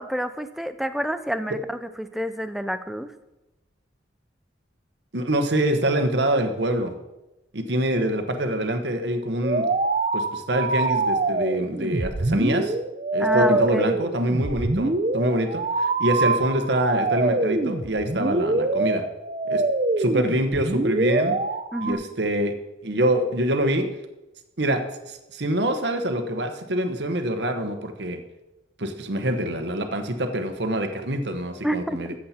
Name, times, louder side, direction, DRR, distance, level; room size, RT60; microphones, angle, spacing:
voice 1, 0.0-3.1 13.2-14.0 21.7-22.0 31.6-32.0, right 1 dB, ahead, 10 dB, 0.4 m, -28 dB
voice 2, 5.1-6.9 7.5-9.6 10.1-12.7 13.1-19.0 19.4-19.6 20.0-21.4 21.8-22.5 22.8-23.9 24.6-24.8 25.1-28.2 28.8-32.1, right 1 dB, 65° right, 6 dB, 1.1 m, -25 dB
sound 1, 9.4-21.9, right 2 dB, 35° right, 0.7 m, -24 dB
14.0 x 7.6 x 4.4 m, 0.99 s
head